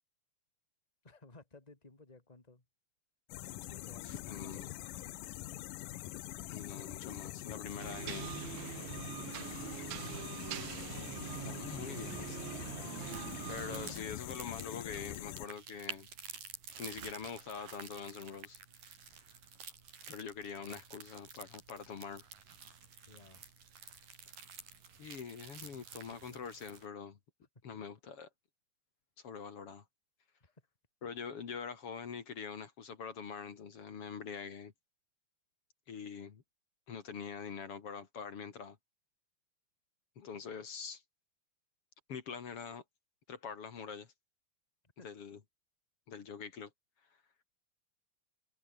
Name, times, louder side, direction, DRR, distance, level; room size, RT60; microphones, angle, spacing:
voice 1, 1.0-2.6 3.6-4.7 12.8-13.0 20.7-20.8 23.0-23.4 25.6-26.5 30.4-30.7 45.0-45.1, left 3 dB, 10° left, 3.2 m, -58 dB
sound 1, 3.3-15.5, left 16 dB, 75° left, 2.0 m, -44 dB
voice 2, 4.0-4.7 6.5-8.3 11.4-12.7 13.5-16.1 16.8-18.6 20.1-22.3 25.0-27.2 27.6-28.3 29.2-29.8 31.0-34.7 35.9-36.4 36.9-38.8 40.2-41.0 42.1-42.8 43.3-44.1 45.0-45.4 46.1-46.7, left 6 dB, 45° left, 2.2 m, -44 dB
sound 2, 7.8-13.9, right 16 dB, 70° right, 2.5 m, -43 dB
sound 3, 13.0-26.9, right 6 dB, 55° right, 5.8 m, -51 dB
omnidirectional pair, 4.8 m